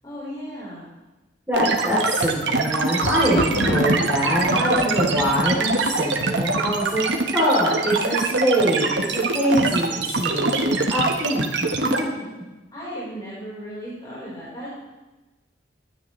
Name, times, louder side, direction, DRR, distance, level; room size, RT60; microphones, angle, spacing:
voice 1, 0.0-0.8 3.2-3.6 12.7-14.7, equal, 25° left, -8 dB, 4.4 m, -36 dB
voice 2, 1.5-7.0 7.3-11.7 12.0-12.1, equal, 10° right, -8 dB, 3.2 m, -23 dB
sound 1, 1.5-12.0, right 3 dB, 65° right, 1.3 m, -23 dB
Thunder, 2.2-7.1 7.9-8.4 8.6-8.7, left 1 dB, 50° left, 1.5 m, -30 dB
22.0 x 10.5 x 3.2 m, 1.1 s
head